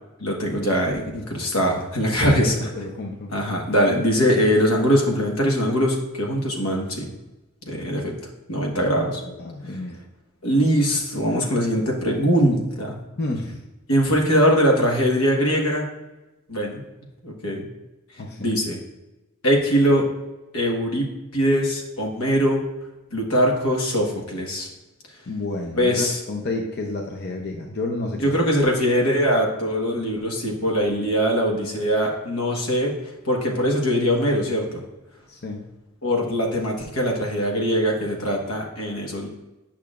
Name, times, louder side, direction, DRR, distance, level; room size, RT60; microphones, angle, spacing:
voice 1, 0.2-2.7 3.3-7.1 7.7-8.1 8.5-9.2 10.4-13.0 13.9-15.8 16.5-16.8 17.2-17.7 18.4-18.8 19.4-20.1 20.5-22.6 23.1-24.7 25.8-26.2 28.2-32.9 33.2-34.8 36.0-39.3, equal, 85° left, 0 dB, 1.4 m, -22 dB
voice 2, 2.2-3.3 8.8-10.0 13.2-13.6 18.2-18.5 25.3-28.4 35.3-35.6, left 2 dB, 50° left, 1 dB, 0.7 m, -31 dB
8.8 x 5.8 x 2.4 m, 1.0 s
head